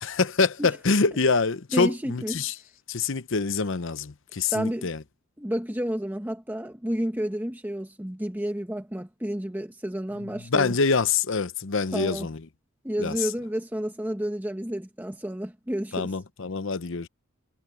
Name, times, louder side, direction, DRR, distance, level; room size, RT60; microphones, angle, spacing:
voice 1, 0.0-2.5 2.9-5.0 10.2-12.4 13.0-13.3 15.9-17.1, left 4 dB, 65° left, 0.8 m, -25 dB
voice 2, 1.7-2.4 4.5-4.9 5.4-10.7 11.9-12.3 12.8-16.1, equal, 10° right, 1.3 m, -31 dB
head